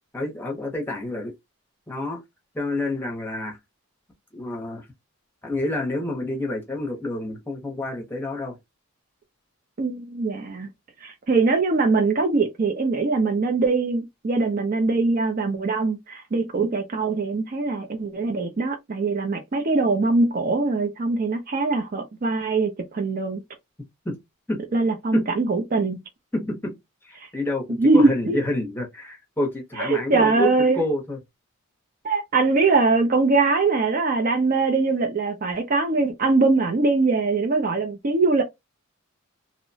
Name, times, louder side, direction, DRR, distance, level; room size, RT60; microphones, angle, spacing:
voice 1, 0.1-1.3 1.9-2.2 2.5-3.6 4.3-4.9 5.4-8.6 24.0-24.2 24.5-24.6 25.1-25.3 26.3-26.7 27.0-31.2, left 1 dB, 10° left, 0.7 m, -28 dB
voice 2, 9.8-10.7 11.0-23.4 24.7-26.0 27.8-28.4 29.8-30.8 32.0-38.4, right 3 dB, 40° right, 0.4 m, -22 dB
2.8 x 2.1 x 2.6 m
head